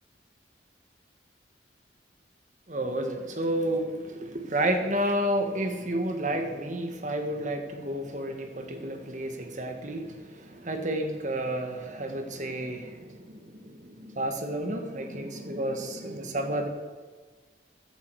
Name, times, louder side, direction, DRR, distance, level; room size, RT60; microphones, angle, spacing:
voice 1, 2.7-16.7, right 1 dB, 40° right, 5 dB, 1.6 m, -31 dB
16.0 x 10.5 x 4.8 m, 1.5 s
head